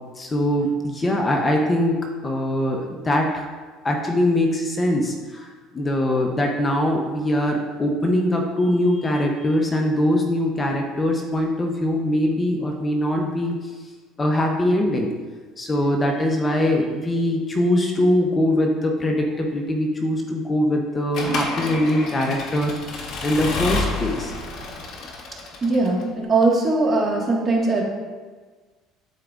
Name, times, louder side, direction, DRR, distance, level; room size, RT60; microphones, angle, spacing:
voice 1, 0.2-3.5 3.8-13.7 14.2-15.1 15.6-24.3, left 1 dB, 25° left, 2 dB, 0.8 m, -22 dB
Accelerating revving vroom / Mechanisms, 21.1-26.0, left 3 dB, 55° left, 1.2 m, -29 dB
voice 2, 25.6-27.8, right 3 dB, 30° right, -2 dB, 1.8 m, -20 dB
11.5 x 4.5 x 2.5 m, 1.4 s
supercardioid pair, 105°, 0 cm